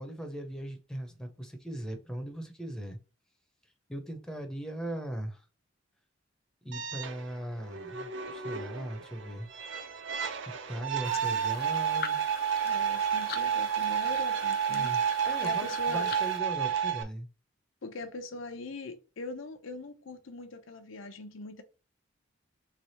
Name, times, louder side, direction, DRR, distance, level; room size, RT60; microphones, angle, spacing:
voice 1, 0.0-3.0 3.9-5.5 6.6-9.5 10.7-12.2 14.7-17.3, right 1 dB, 5° left, 0.7 m, -39 dB
sound 1, 6.7-17.0, right 7 dB, 70° right, 0.6 m, -31 dB
sound 2, 11.0-16.4, left 5 dB, 50° left, 0.5 m, -43 dB
voice 2, 12.6-14.9 15.4-16.1 17.8-21.6, left 3 dB, 85° left, 0.7 m, -41 dB
3.5 x 3.3 x 4.2 m
head